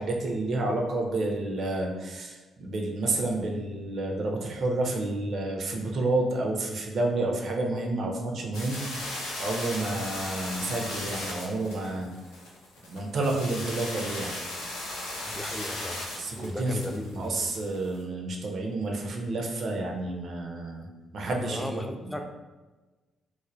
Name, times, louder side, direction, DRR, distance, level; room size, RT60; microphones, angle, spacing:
voice 1, 0.0-12.1 12.9-14.3 16.2-20.9 21.1-22.3, right 2 dB, 55° right, 1 dB, 0.4 m, -30 dB
sound 1, 8.5-18.0, left 1 dB, 75° left, 0.5 m, -37 dB
voice 2, 15.2-16.0 16.4-17.5 21.4-22.3, left 1 dB, 10° left, 4 dB, 0.4 m, -36 dB
3.1 x 2.0 x 2.6 m, 1.2 s
figure-of-eight pair, 40°, 0 cm